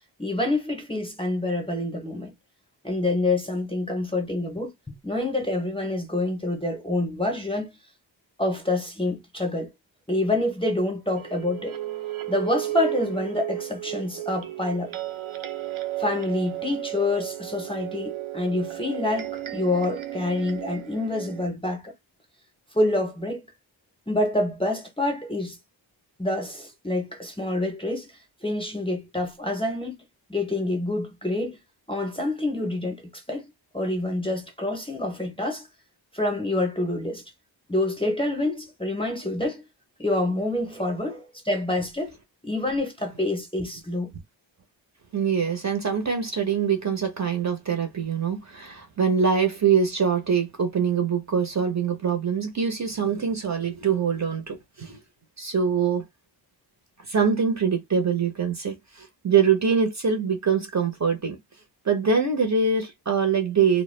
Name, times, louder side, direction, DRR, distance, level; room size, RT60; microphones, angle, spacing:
voice 1, 0.2-2.3 2.8-4.7 5.0-7.7 8.4-9.7 10.1-11.8 12.3-14.9 16.0-21.9 22.7-23.4 24.1-25.6 26.2-28.1 28.4-29.9 30.3-31.6 31.9-33.4 33.7-35.7 36.1-37.2 37.7-39.6 40.0-42.1 42.4-44.1, left 2 dB, 10° left, 0.6 m, -27 dB
sound 1, 11.2-21.5, right 14 dB, 80° right, 0.6 m, -34 dB
voice 2, 45.1-55.0 55.4-56.0 57.1-61.4 61.8-63.8, right 6 dB, 35° right, 0.6 m, -24 dB
2.2 x 2.0 x 3.1 m
wide cardioid pair, 165°, 47 cm